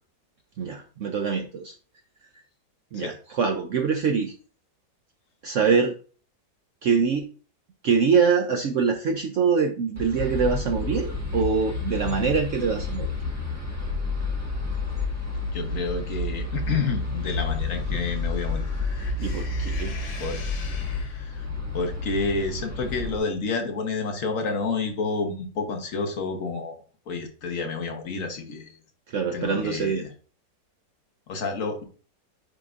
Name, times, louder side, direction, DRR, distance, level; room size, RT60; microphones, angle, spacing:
voice 1, 0.6-1.7 2.9-4.3 5.4-5.9 6.8-7.3 7.8-13.1 19.2-20.0 29.1-30.0, right 5 dB, 70° right, 5 dB, 0.7 m, -24 dB
sound 1, 10.0-23.2, left 3 dB, 10° right, 1.4 m, -30 dB
voice 2, 15.5-18.6 20.2-20.4 21.0-21.4 21.7-26.8 27.1-28.8 29.3-30.1 31.3-31.8, left 4 dB, 50° left, 4 dB, 1.4 m, -29 dB
sound 2, 17.2-21.5, left 4 dB, 75° left, 1.8 m, -44 dB
10.0 x 3.8 x 2.5 m, 0.40 s
omnidirectional pair, 1.9 m